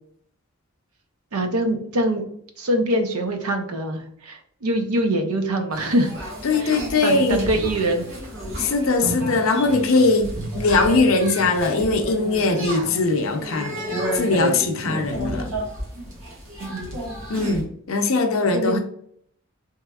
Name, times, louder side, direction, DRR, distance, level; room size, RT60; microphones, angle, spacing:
voice 1, 1.3-2.2 2.6-6.1 6.6-6.7 7.0-8.0 16.6-17.0 18.5-18.8, right 1 dB, 80° right, 0.6 m, -24 dB
sound 1, 5.7-17.6, right 1 dB, 60° right, 1.2 m, -31 dB
voice 2, 6.4-7.4 8.6-13.8 14.1-15.5 17.3-18.8, left 3 dB, 65° left, 0.5 m, -21 dB
3.4 x 2.9 x 2.3 m
head